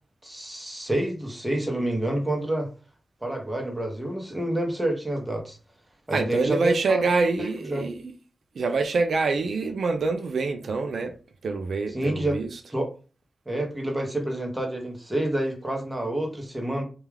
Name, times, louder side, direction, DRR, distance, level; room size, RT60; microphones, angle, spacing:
voice 1, 0.2-2.7 3.2-5.6 6.1-7.9 11.9-12.4 12.7-12.9 13.5-16.8, right 1 dB, 10° right, 0.7 m, -28 dB
voice 2, 6.1-8.1 8.6-11.1 11.4-12.5, right 4 dB, 80° right, 0.3 m, -25 dB
2.3 x 2.3 x 3.2 m
wide cardioid pair, 120°, 0 cm